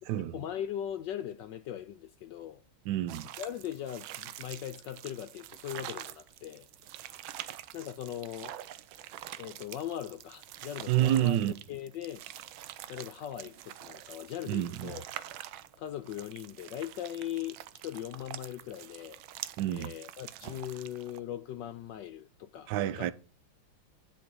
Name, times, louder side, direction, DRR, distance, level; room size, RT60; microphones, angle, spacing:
voice 1, 0.3-2.6 3.4-6.7 7.3-8.6 9.4-12.2 12.7-15.1 15.8-17.6 17.8-19.2 19.7-23.1, left 11 dB, 70° left, 1.3 m, -40 dB
voice 2, 2.9-3.3 10.9-11.5 14.5-14.9 19.6-19.9 22.7-23.1, right 13 dB, 70° right, 1.2 m, -28 dB
sound 1, 3.1-21.2, right 13 dB, 85° right, 1.5 m, -46 dB
10.5 x 5.1 x 5.4 m
omnidirectional pair, 2.1 m